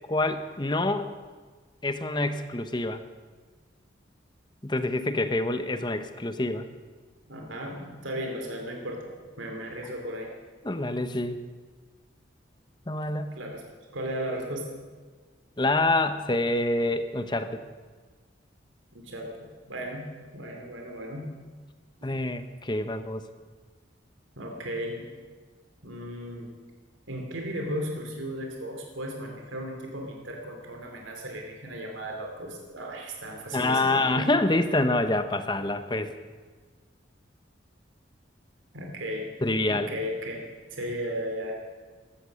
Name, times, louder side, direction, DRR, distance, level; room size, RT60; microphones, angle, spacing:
voice 1, 0.1-1.1 1.8-3.0 4.6-6.7 10.6-11.4 12.9-13.3 15.6-17.6 22.0-23.2 33.5-36.1 39.4-39.9, left 2 dB, 25° left, 10 dB, 0.8 m, -26 dB
voice 2, 7.3-9.1 9.4-10.3 13.3-13.6 13.9-14.7 18.9-19.3 19.7-21.3 24.4-25.0 25.8-26.5 27.1-34.2 38.7-39.3 39.7-40.4 40.7-41.6, equal, 90° right, 2 dB, 2.8 m, -35 dB
15.0 x 13.0 x 6.4 m, 1.4 s
head